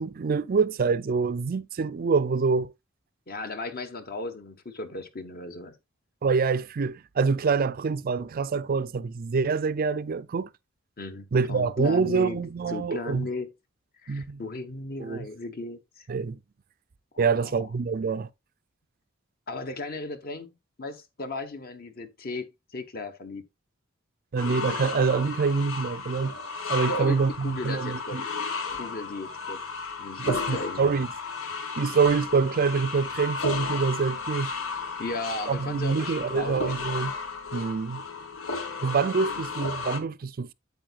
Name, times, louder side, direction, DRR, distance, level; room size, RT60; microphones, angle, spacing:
voice 1, 0.0-2.7 6.2-10.5 11.3-13.3 14.1-14.4 15.0-15.3 16.1-16.4 17.2-18.3 24.3-26.3 26.7-28.3 30.2-31.1 31.8-34.5 35.5-37.1 37.5-38.0 38.8-40.5, right 5 dB, 45° right, 0.4 m, -26 dB
voice 2, 3.3-5.8 11.0-12.4 12.7-13.5 14.0-16.1 17.1-17.7 19.5-23.4 26.9-28.2 28.8-29.6 30.0-31.0 35.0-36.8 39.2-39.4, left 2 dB, 50° left, 1.2 m, -36 dB
sound 1, 24.4-40.0, left 4 dB, 80° left, 1.4 m, -34 dB
8.8 x 8.3 x 2.4 m
head